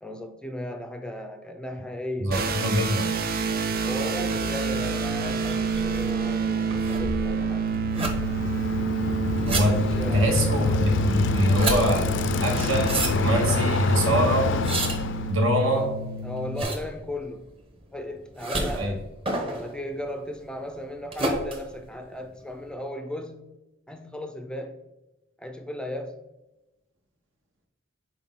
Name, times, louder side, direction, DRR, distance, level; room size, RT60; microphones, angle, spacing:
voice 1, 0.0-2.3 3.8-7.7 9.7-10.6 15.6-17.5 17.9-19.1 19.5-23.6 23.9-24.8 25.4-26.2, left 1 dB, 5° left, 6 dB, 0.4 m, -36 dB
voice 2, 2.2-3.1 9.5-9.8 10.1-12.1 12.4-14.5 15.3-15.8 18.7-18.9, equal, 75° right, 2 dB, 1.4 m, -24 dB
sound 1, 2.3-16.6, right 4 dB, 50° right, 0.5 m, -29 dB
sound 2, 5.0-22.7, right 2 dB, 30° right, 1.0 m, -33 dB
Bicycle, 7.8-15.4, left 3 dB, 65° left, 0.4 m, -26 dB
6.0 x 4.3 x 3.7 m, 1.0 s
head